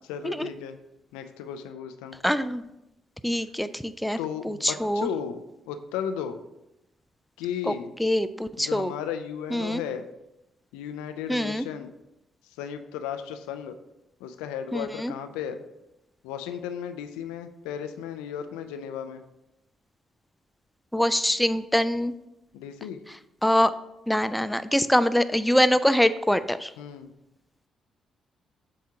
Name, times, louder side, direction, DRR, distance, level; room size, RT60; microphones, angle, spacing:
voice 1, 0.1-0.8 1.1-2.2 4.2-5.4 5.7-6.4 7.4-7.9 8.6-10.0 10.7-11.9 12.6-13.7 14.2-15.6 16.2-19.2 22.5-23.0 26.8-27.1, left 8 dB, 75° left, 8 dB, 0.4 m, -34 dB
voice 2, 2.2-2.6 3.2-4.2 4.4-5.1 7.6-7.7 8.0-8.9 9.5-9.8 11.3-11.7 14.7-15.1 20.9-22.1 23.1-23.7 24.1-26.7, equal, 5° left, 12 dB, 0.3 m, -24 dB
7.5 x 2.7 x 4.7 m, 0.90 s
hypercardioid pair, 45°, 0 cm